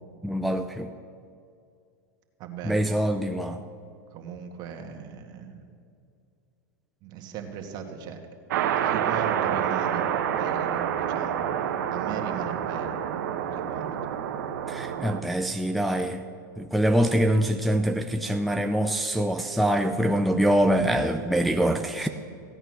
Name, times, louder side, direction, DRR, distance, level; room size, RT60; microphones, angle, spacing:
voice 1, 0.2-0.9 2.6-3.6 14.7-16.2 16.6-22.1, right 1 dB, ahead, 4 dB, 0.5 m, -24 dB
voice 2, 2.4-2.8 4.1-5.6 7.0-8.2 8.6-13.2 13.5-13.9 22.0-22.1, right 7 dB, 45° right, 4 dB, 1.9 m, -38 dB
sound 1, 8.5-15.2, right 9 dB, 70° right, 1.1 m, -28 dB
16.0 x 8.9 x 6.5 m, 2.4 s
hypercardioid pair, 115°, 10 cm